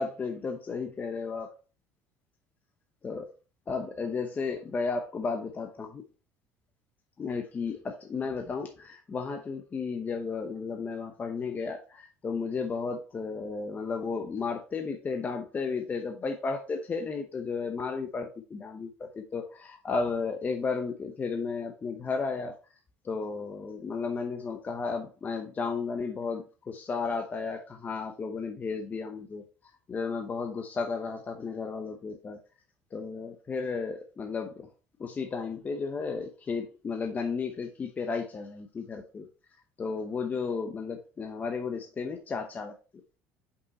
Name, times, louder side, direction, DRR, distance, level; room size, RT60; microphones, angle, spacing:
voice 1, 0.0-1.5 3.0-3.3 3.7-6.0 7.2-22.6 23.0-29.4 29.9-32.4 32.9-34.7 35.0-39.3 39.8-42.7, left 4 dB, 25° left, 0.8 m, -33 dB
5.6 x 5.3 x 4.1 m
cardioid pair, 125°, 6 cm